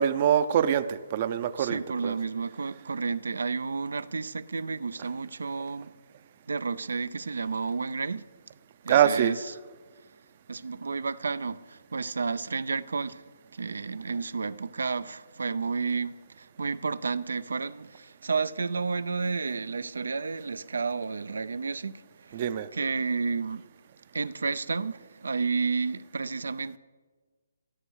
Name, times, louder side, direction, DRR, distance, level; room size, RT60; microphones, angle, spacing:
voice 1, 0.0-2.2 8.9-9.4 22.3-22.7, right 9 dB, 30° right, 0.5 m, -24 dB
voice 2, 1.6-5.9 6.5-8.3 8.8-9.5 10.5-13.2 13.5-22.4 22.7-23.7 24.1-26.8, right 4 dB, 90° right, 0.6 m, -31 dB
13.0 x 11.5 x 6.3 m
hypercardioid pair, 170°, 0 cm